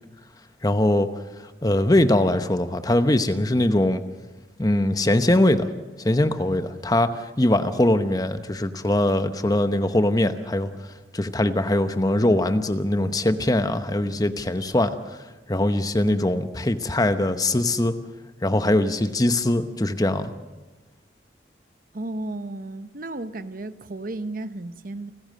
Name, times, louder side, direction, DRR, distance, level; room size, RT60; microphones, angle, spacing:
voice 1, 0.6-1.1 1.6-4.0 4.6-5.7 6.0-10.7 11.1-15.0 15.5-18.0 18.4-20.3, left 1 dB, 20° left, 0.9 m, -21 dB
voice 2, 21.9-25.1, right 2 dB, 45° right, 0.8 m, -33 dB
29.5 x 14.5 x 6.6 m
head